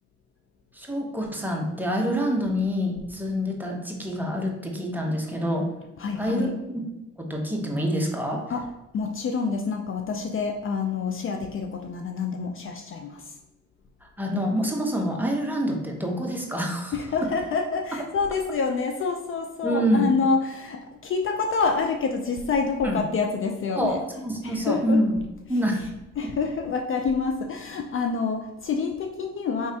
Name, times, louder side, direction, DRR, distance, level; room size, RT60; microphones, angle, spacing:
voice 1, 0.7-5.7 6.2-6.8 7.2-8.4 14.2-17.0 17.9-18.0 19.6-20.1 22.8-23.0 23.7-25.2 25.5-25.9, equal, 5° right, 0 dB, 0.8 m, -26 dB
voice 2, 6.0-6.5 8.5-8.6 8.9-13.2 16.9-24.0 24.4-25.0 26.2-29.7, left 5 dB, 45° left, 4 dB, 0.4 m, -27 dB
4.7 x 3.1 x 2.7 m, 1.0 s
cardioid pair, 90°, 30 cm